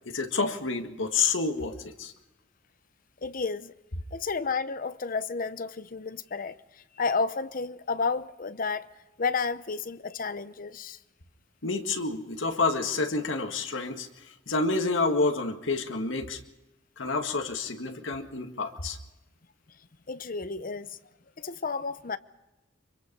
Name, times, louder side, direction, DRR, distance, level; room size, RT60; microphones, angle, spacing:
voice 1, 0.1-2.1 11.6-16.4 17.0-19.0, left 3 dB, 85° left, 1.8 m, -29 dB
voice 2, 3.2-3.7 4.1-8.9 9.2-11.0 20.1-21.0 21.4-22.2, left 4 dB, 50° left, 0.8 m, -31 dB
25.0 x 24.0 x 5.4 m
head